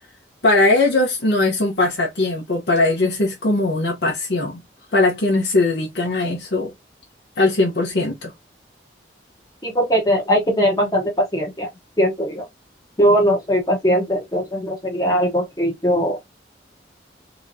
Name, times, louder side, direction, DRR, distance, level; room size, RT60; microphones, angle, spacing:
voice 1, 0.4-4.6 4.9-6.7 7.4-8.3, left 2 dB, 65° left, 0.9 m, -19 dB
voice 2, 9.6-11.7 12.0-12.4 13.0-16.2, equal, 20° left, 1.0 m, -20 dB
3.6 x 2.9 x 2.6 m
head